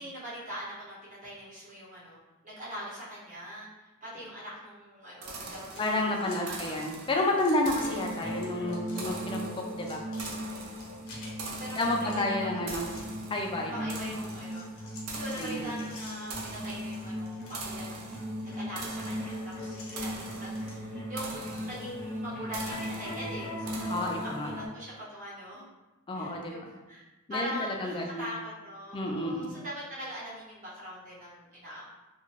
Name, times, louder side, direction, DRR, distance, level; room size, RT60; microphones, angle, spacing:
voice 1, 0.0-6.8 7.6-8.0 11.3-12.9 13.6-14.6 15.1-18.1 18.4-25.6 26.1-27.0 27.3-31.8, equal, 35° right, -9 dB, 1.0 m, -42 dB
sound 1, 5.2-24.6, right 3 dB, 80° right, 0.5 m, -44 dB
sound 2, 5.5-8.0 8.3-9.0 9.3-13.8 14.2-20.8, left 2 dB, 70° left, 0.7 m, -52 dB
voice 2, 5.8-9.4 9.7-10.0 11.8-12.8 13.3-13.7 15.4-15.9 23.9-24.5 26.1-26.5 27.3-28.3 28.9-29.5, left 2 dB, 25° left, 1 dB, 0.3 m, -30 dB
sound 3, 7.8-24.7, equal, 5° left, 0.7 m, -38 dB
2.4 x 2.2 x 3.1 m, 1.1 s
head